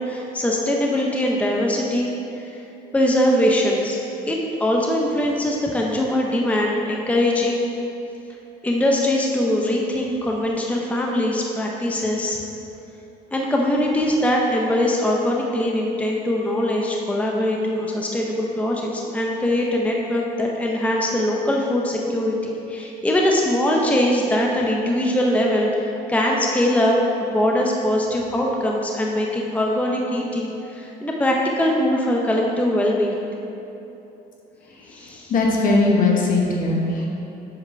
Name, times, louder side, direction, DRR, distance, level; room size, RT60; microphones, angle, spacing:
voice 1, 0.0-2.1 2.4-2.6 2.9-4.0 4.3-7.7 8.6-12.4 13.3-33.2 34.9-35.3, left 1 dB, 10° left, -1 dB, 0.6 m, -22 dB
voice 2, 35.3-37.1, left 3 dB, 55° left, -1 dB, 1.3 m, -19 dB
8.0 x 3.5 x 5.7 m, 2.9 s
cardioid pair, 110°, 17 cm